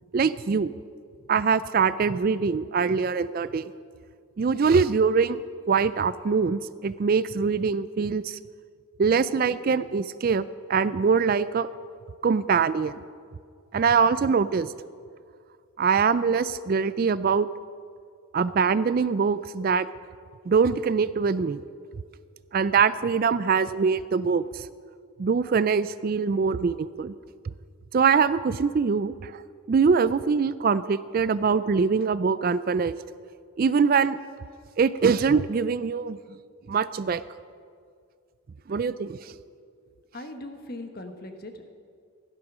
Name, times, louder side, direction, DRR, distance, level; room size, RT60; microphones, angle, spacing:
voice 1, 0.1-0.7 1.3-3.7 4.4-5.4 5.7-8.4 9.0-10.4 10.7-11.7 12.2-13.0 13.7-14.7 15.8-17.5 18.3-19.9 20.5-21.6 22.5-24.7 25.2-27.1 27.9-29.4 29.7-33.0 33.6-34.2 34.8-36.2 36.7-37.2 38.7-39.3, right 5 dB, 40° right, 15 dB, 0.3 m, -23 dB
voice 2, 40.1-41.7, left 1 dB, 45° left, 6 dB, 1.3 m, -40 dB
16.0 x 11.5 x 6.1 m, 2.2 s
head